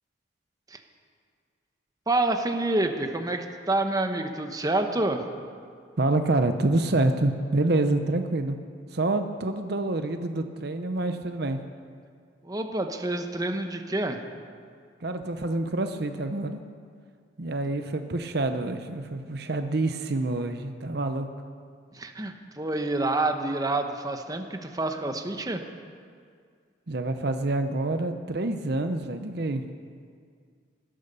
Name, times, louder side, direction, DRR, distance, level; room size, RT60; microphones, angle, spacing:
voice 1, 2.1-5.2 12.4-14.2 21.9-25.6, right 2 dB, 20° right, 5 dB, 1.0 m, -28 dB
voice 2, 6.0-8.6 8.9-11.6 15.0-16.6 17.4-21.3 26.9-29.6, right 2 dB, 60° right, 8 dB, 0.8 m, -27 dB
16.0 x 12.5 x 6.8 m, 2.1 s
head